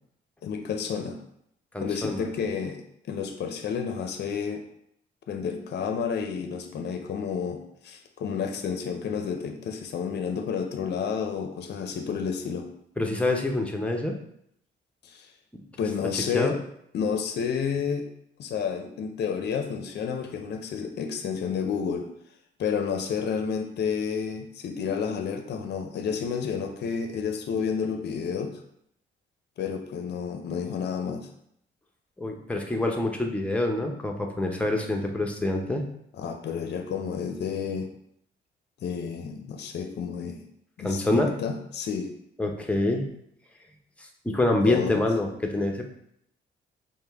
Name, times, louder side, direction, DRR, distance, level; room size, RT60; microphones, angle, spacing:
voice 1, 0.4-1.2 1.8-4.6 5.3-12.7 15.0-15.3 15.8-16.6 16.9-18.1 18.4-22.1 22.6-28.5 29.6-31.3 36.2-37.9 38.8-40.4 40.8-42.1 44.6-45.0, left 6 dB, 60° left, 6 dB, 0.6 m, -30 dB
voice 2, 1.7-2.3 13.0-14.2 16.3-16.5 32.2-35.9 40.8-41.3 42.4-43.1 44.2-45.8, left 2 dB, 5° left, 2 dB, 0.6 m, -26 dB
5.1 x 2.1 x 3.4 m, 0.72 s
cardioid pair, 90°, 20 cm